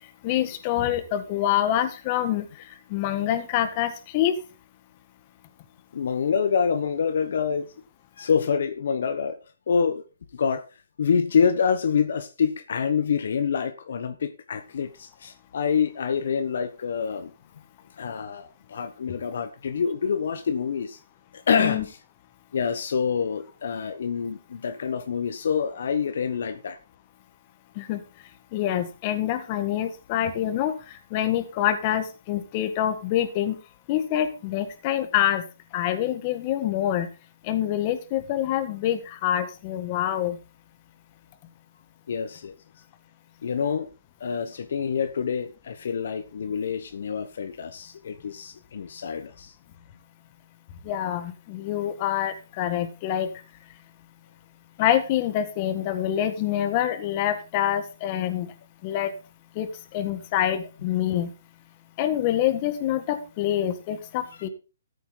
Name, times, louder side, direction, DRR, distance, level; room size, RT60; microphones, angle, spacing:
voice 1, 0.2-2.5 2.9-4.3 21.5-21.8 27.8-28.0 28.5-30.7 31.1-33.6 33.9-35.5 35.7-37.1 37.4-40.4 50.9-53.3 54.8-58.5 58.8-59.1 59.6-61.3 62.0-64.5, left 11 dB, 30° left, 1.6 m, -26 dB
voice 2, 5.9-7.7 8.2-9.4 9.7-10.0 10.3-10.7 11.0-17.3 18.0-21.0 21.3-22.0 22.5-26.8 42.1-42.5 43.4-43.9 44.2-49.5 64.4-64.5, left 6 dB, 60° left, 1.1 m, -26 dB
13.5 x 8.3 x 4.0 m
hypercardioid pair, 155°, 0 cm